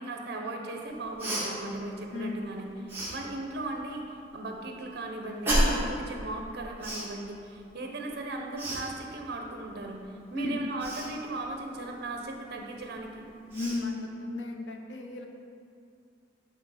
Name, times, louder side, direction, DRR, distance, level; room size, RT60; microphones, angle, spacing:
voice 1, 0.0-13.3, right 2 dB, 60° right, 2 dB, 0.7 m, -37 dB
Cough, 1.2-1.5 2.9-3.1 5.4-5.9 6.8-7.1 8.6-8.8 10.8-11.1 12.9-13.0 13.5-13.8, right 1 dB, 15° right, 1.6 m, -28 dB
voice 2, 2.1-2.5 10.3-10.7 13.5-15.3, left 2 dB, 80° left, 3 dB, 0.6 m, -34 dB
8.4 x 3.5 x 4.1 m, 2.4 s
head